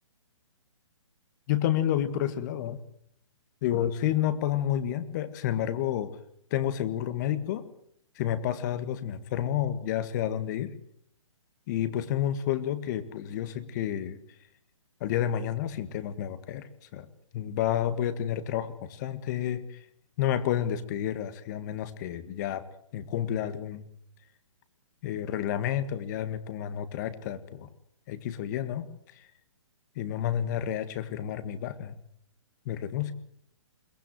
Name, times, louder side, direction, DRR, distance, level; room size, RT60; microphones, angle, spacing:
voice 1, 1.5-2.8 3.6-6.1 6.5-7.7 8.2-10.7 11.7-14.2 15.0-17.1 17.3-19.8 20.2-22.7 22.9-23.8 25.0-27.7 28.1-28.9 29.2-29.3 30.0-32.0 32.7-33.1, left 11 dB, 35° left, 13 dB, 1.8 m, -30 dB
22.5 x 19.0 x 7.9 m, 0.67 s
hypercardioid pair, 150°, 16 cm